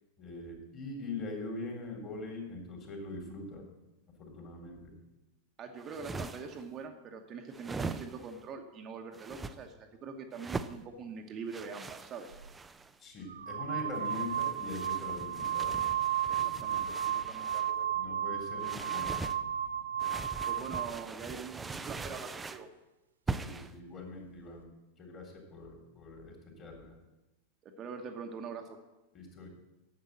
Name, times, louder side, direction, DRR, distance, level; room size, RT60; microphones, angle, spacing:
voice 1, 0.2-3.6 4.2-4.9 13.0-15.9 16.4-16.9 17.9-19.3 23.3-24.7 25.0-27.0 29.1-29.5, left 2 dB, 30° left, 1 dB, 3.4 m, -42 dB
voice 2, 5.6-12.4 16.3-18.2 20.5-22.7 27.6-28.8, right 5 dB, 30° right, 4 dB, 1.1 m, -44 dB
sound 1, 5.8-6.6 7.5-8.4 9.1-9.5 10.3-10.8 11.5-12.9 13.9-17.7 18.6-19.4 20.0-22.7 23.3-23.7, right 4 dB, 15° right, 0.5 m, -41 dB
sound 2, 12.3-12.5 13.3-21.0, right 10 dB, 70° right, 0.4 m, -33 dB
10.5 x 7.4 x 7.5 m, 1.0 s
figure-of-eight pair, 90°, 0 cm